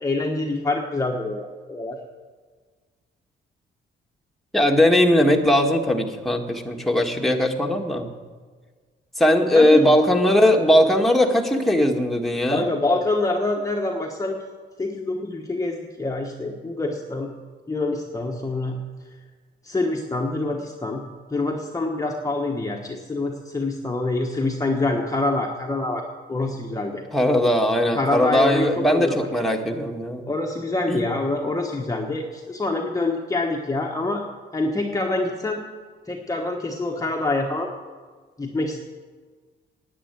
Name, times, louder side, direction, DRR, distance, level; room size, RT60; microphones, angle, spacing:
voice 1, 0.0-2.0 9.5-9.8 10.4-10.5 12.5-14.4 14.8-17.3 17.7-18.8 19.6-21.0 21.3-26.0 26.3-27.0 27.9-29.3 30.3-34.2 34.5-35.6 36.1-37.7 38.4-38.8, left 2 dB, 15° left, 1 dB, 1.2 m, -26 dB
voice 2, 4.5-8.1 9.2-12.7 27.1-30.2 30.9-31.0, left 1 dB, ahead, 1 dB, 1.6 m, -19 dB
10.0 x 8.6 x 9.0 m, 1.5 s
cardioid pair, 90°, 20 cm